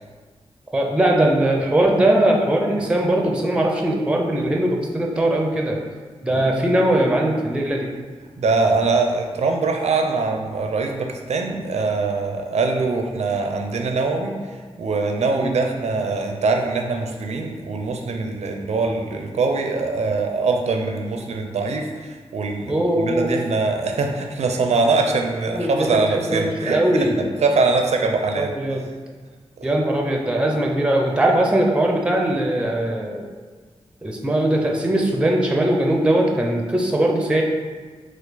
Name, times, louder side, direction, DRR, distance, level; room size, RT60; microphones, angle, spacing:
voice 1, 0.7-5.8 6.2-7.9 15.4-15.6 22.7-23.3 25.5-26.0 26.3-27.3 28.4-28.8 29.6-33.3 34.0-37.4, right 1 dB, 10° right, 1 dB, 0.5 m, -20 dB
voice 2, 8.4-14.3 14.8-28.5 29.6-29.7, right 3 dB, 80° right, 3 dB, 0.5 m, -23 dB
4.5 x 2.4 x 4.0 m, 1.5 s
wide cardioid pair, 105°, 11 cm